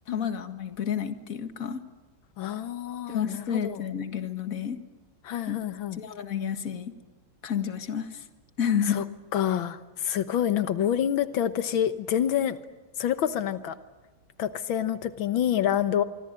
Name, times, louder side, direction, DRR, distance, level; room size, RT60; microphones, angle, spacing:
voice 1, 0.1-1.8 3.1-4.8 5.5-5.6 5.9-6.9 7.4-8.2 8.6-9.0, left 8 dB, 45° left, 9 dB, 2.1 m, -30 dB
voice 2, 2.4-3.8 5.2-6.0 8.9-9.0 9.3-12.6 13.0-13.8 14.4-16.0, left 10 dB, 90° left, 11 dB, 1.9 m, -27 dB
25.0 x 25.0 x 9.0 m, 1.2 s
omnidirectional pair, 2.1 m